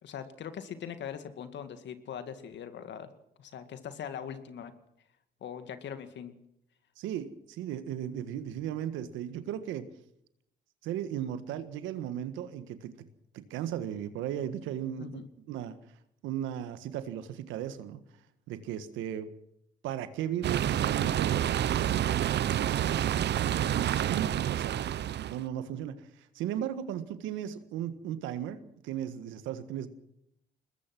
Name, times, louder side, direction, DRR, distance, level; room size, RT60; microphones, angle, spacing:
voice 1, 0.0-3.1 3.4-4.7 5.4-6.3 15.0-15.2, left 8 dB, 70° left, 10 dB, 2.2 m, -41 dB
voice 2, 7.0-9.9 10.8-13.1 13.3-15.1 15.5-15.8 16.2-18.0 18.5-19.3 19.8-22.1 22.6-23.0 24.0-26.0 26.3-29.9, right 10 dB, 85° right, 11 dB, 1.6 m, -36 dB
sound 1, 20.4-25.4, right 11 dB, 60° right, 0.8 m, -28 dB
22.5 x 20.0 x 6.2 m, 0.77 s
supercardioid pair, 55°, 19 cm